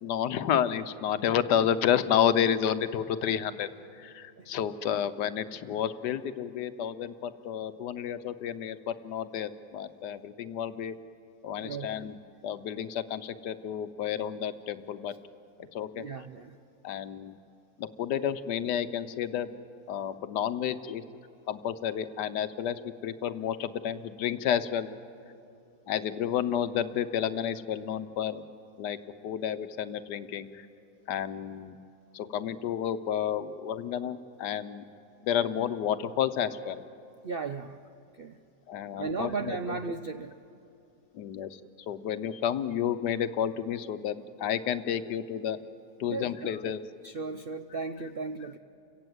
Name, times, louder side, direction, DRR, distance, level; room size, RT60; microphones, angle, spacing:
voice 1, 0.0-3.7 4.0-10.9 11.4-12.2 12.4-15.1 15.7-16.0 16.8-17.4 17.8-19.6 19.9-21.0 21.5-22.8 23.0-24.9 25.9-28.4 28.8-29.0 29.2-30.7 31.1-31.8 32.1-34.8 35.2-36.8 38.7-39.8 41.1-41.6 41.9-45.6 46.0-46.8, left 9 dB, 80° left, 12 dB, 1.4 m, -30 dB
voice 2, 11.5-12.1 15.9-16.6 37.2-37.8 38.2-38.4 39.0-40.3 46.0-46.7 47.0-48.6, right 4 dB, 75° right, 8 dB, 0.5 m, -36 dB
29.5 x 17.0 x 8.0 m, 2.6 s
omnidirectional pair, 1.8 m